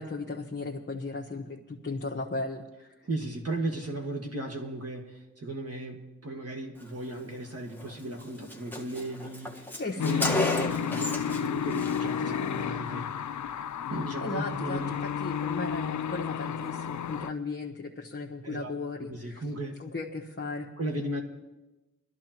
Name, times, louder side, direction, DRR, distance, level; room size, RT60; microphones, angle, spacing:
voice 1, 0.0-2.9 9.8-10.9 14.2-19.4 19.8-20.7, left 3 dB, 35° left, -1 dB, 1.2 m, -36 dB
voice 2, 3.0-13.1 13.9-14.9 18.4-18.7 19.1-19.8 20.8-21.2, right 1 dB, 50° right, 1 dB, 1.7 m, -36 dB
Car, 7.8-7.9 8.2-8.3 8.5-11.5 11.7-12.0, left 2 dB, 5° left, 1.4 m, -32 dB
sound 1, 10.0-17.3, left 8 dB, 65° left, 0.4 m, -32 dB
22.5 x 13.0 x 3.0 m, 1.1 s
wide cardioid pair, 70°, 31 cm